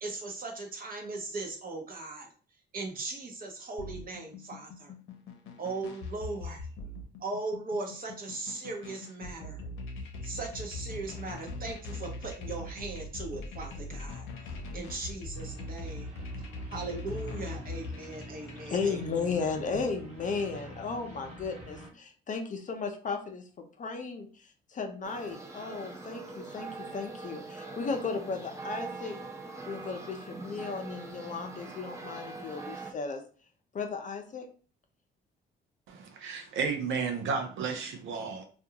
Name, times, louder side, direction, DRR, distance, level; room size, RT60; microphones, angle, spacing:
voice 1, 0.0-2.3 2.7-4.9 5.6-6.6 7.2-9.6 10.2-14.3 14.7-16.2 16.7-19.0, right 3 dB, 45° right, 2 dB, 0.9 m, -38 dB
sound 1, 3.8-18.7, left 2 dB, 85° left, 0.6 m, -41 dB
sound 2, 15.3-21.9, right 1 dB, 30° right, 1.1 m, -46 dB
voice 2, 18.7-24.3 24.7-29.2 29.7-33.2 33.7-34.5, left 4 dB, 40° left, 5 dB, 0.5 m, -35 dB
sound 3, 25.0-32.9, right 3 dB, 15° right, 0.5 m, -43 dB
voice 3, 35.9-38.4, right 5 dB, 80° right, 3 dB, 0.7 m, -33 dB
2.4 x 2.2 x 2.8 m, 0.40 s
cardioid pair, 90°, 20 cm